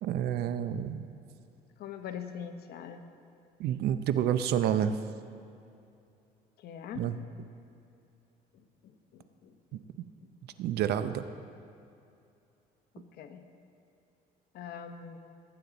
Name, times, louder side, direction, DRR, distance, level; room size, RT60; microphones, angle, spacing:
voice 1, 0.0-1.1 3.6-5.0 7.0-7.1 10.6-11.2, right 10 dB, 70° right, 11 dB, 0.6 m, -29 dB
voice 2, 1.8-3.0 6.6-7.1 8.5-9.9 12.9-13.5 14.5-15.2, left 8 dB, 70° left, 7 dB, 1.0 m, -43 dB
17.5 x 8.8 x 4.0 m, 2.6 s
cardioid pair, 110°, 17 cm